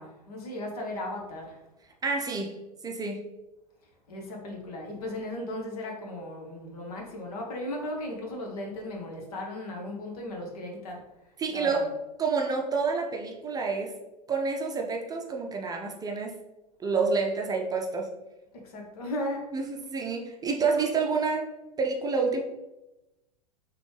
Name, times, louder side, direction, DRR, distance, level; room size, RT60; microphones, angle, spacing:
voice 1, 0.0-1.6 4.1-11.0 11.5-11.8 18.5-19.5, left 1 dB, 65° left, 1 dB, 1.2 m, -36 dB
voice 2, 2.0-2.6 2.8-3.2 11.4-11.9 12.2-13.9 14.3-16.4 16.8-18.1 19.5-21.5 21.8-22.4, right 4 dB, 20° right, 1 dB, 0.6 m, -28 dB
4.1 x 3.2 x 3.2 m, 0.97 s
hypercardioid pair, 95°, 21 cm